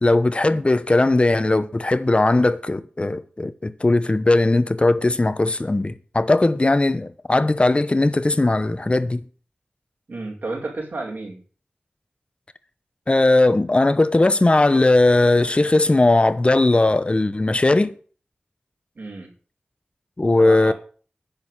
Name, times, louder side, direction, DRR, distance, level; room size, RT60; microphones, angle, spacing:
voice 1, 0.0-9.2 13.1-17.9 20.2-20.7, left 2 dB, 35° left, 1.1 m, -18 dB
voice 2, 10.1-11.4 19.0-19.3 20.4-20.7, right 2 dB, 70° right, 5.1 m, -32 dB
10.5 x 6.6 x 9.0 m
wide cardioid pair, 65°, 3 cm